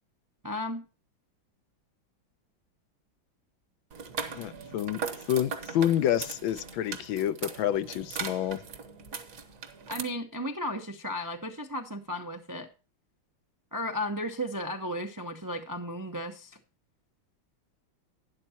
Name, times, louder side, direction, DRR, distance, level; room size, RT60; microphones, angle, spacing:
voice 1, 0.4-0.8 9.9-12.7 13.7-16.6, equal, 30° right, 4 dB, 0.3 m, -34 dB
sound 1, 3.9-10.0, right 6 dB, 50° right, 1.3 m, -39 dB
voice 2, 4.3-5.0 5.3-8.6, left 11 dB, 80° left, 12 dB, 1.4 m, -28 dB
12.0 x 10.0 x 2.9 m, 0.33 s
omnidirectional pair, 2.2 m